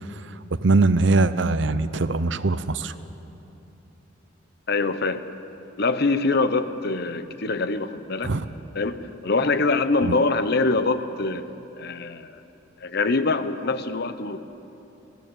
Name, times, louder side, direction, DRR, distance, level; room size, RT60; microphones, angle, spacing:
voice 1, 0.6-2.9 8.2-8.4 10.0-10.2, right 3 dB, 65° right, 13 dB, 0.7 m, -21 dB
voice 2, 4.7-5.2 5.8-8.3 8.7-11.5 11.8-12.4 12.8-14.4, left 3 dB, 55° left, 11 dB, 0.9 m, -24 dB
19.5 x 16.5 x 9.1 m, 3.0 s
head